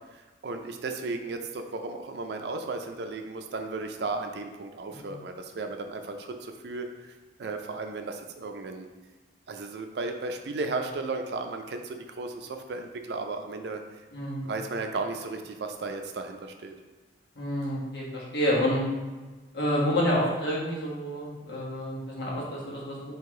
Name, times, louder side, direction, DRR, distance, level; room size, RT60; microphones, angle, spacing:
voice 1, 0.4-7.1 7.4-8.9 9.5-13.8 14.4-16.8, right 3 dB, 70° right, 5 dB, 0.4 m, -35 dB
voice 2, 14.1-14.5 17.4-18.8 19.5-23.0, equal, 65° left, -5 dB, 1.3 m, -28 dB
4.8 x 2.8 x 3.6 m, 1.2 s
head